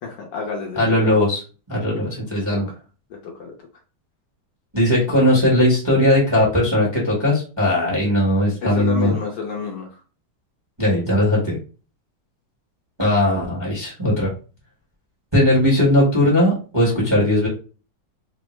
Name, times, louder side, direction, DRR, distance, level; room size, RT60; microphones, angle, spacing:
voice 1, 0.0-1.1 1.9-2.0 2.3-2.8 3.2-3.5 8.6-9.9, left 5 dB, 70° left, 0 dB, 1.2 m, -29 dB
voice 2, 0.8-1.4 1.7-2.7 4.7-9.2 10.8-11.6 13.0-14.3 15.3-17.5, left 1 dB, 15° right, -5 dB, 1.0 m, -18 dB
3.6 x 2.0 x 3.0 m, 0.35 s
omnidirectional pair, 2.2 m